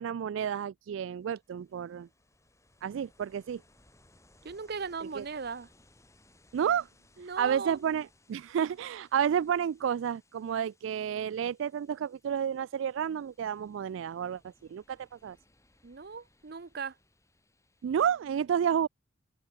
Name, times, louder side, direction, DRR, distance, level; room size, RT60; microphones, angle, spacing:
voice 1, 0.0-2.1 2.8-3.6 5.2-5.3 6.5-6.9 7.4-14.4 14.7-15.0 15.2-15.4 17.8-18.9, right 8 dB, 75° right, 0.3 m, -30 dB
Ocean, 1.0-18.4, left 2 dB, 15° left, 7.0 m, -65 dB
voice 2, 4.4-5.7 7.2-7.9 15.8-17.0, right 5 dB, 55° right, 0.7 m, -38 dB
open air
head